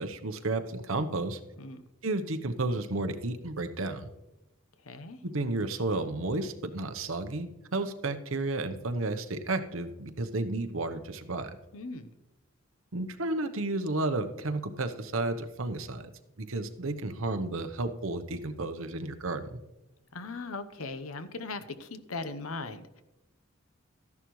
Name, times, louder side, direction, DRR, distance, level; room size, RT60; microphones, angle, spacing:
voice 1, 0.0-1.4 2.0-4.1 5.2-11.5 12.9-16.1 16.4-19.6, right 2 dB, 70° right, 8 dB, 0.9 m, -32 dB
voice 2, 4.9-5.2 11.7-12.1 20.1-23.0, left 3 dB, 85° left, 11 dB, 0.9 m, -39 dB
13.5 x 10.5 x 3.1 m, 0.99 s
head